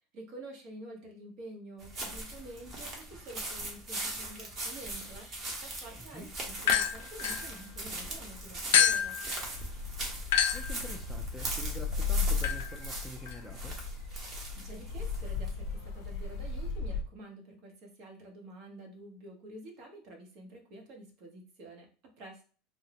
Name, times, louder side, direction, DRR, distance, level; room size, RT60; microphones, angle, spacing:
voice 1, 0.1-9.2 14.5-22.4, right 1 dB, 55° right, 2 dB, 1.1 m, -49 dB
sound 1, 1.8-16.7, right 2 dB, 35° right, 1.1 m, -40 dB
voice 2, 6.0-6.3 10.5-13.7, left 1 dB, ahead, 2 dB, 0.4 m, -46 dB
sound 2, 6.6-8.1 8.7-17.0, left 7 dB, 85° left, 0.4 m, -31 dB
3.6 x 2.1 x 2.9 m, 0.39 s
supercardioid pair, 120°, 0 cm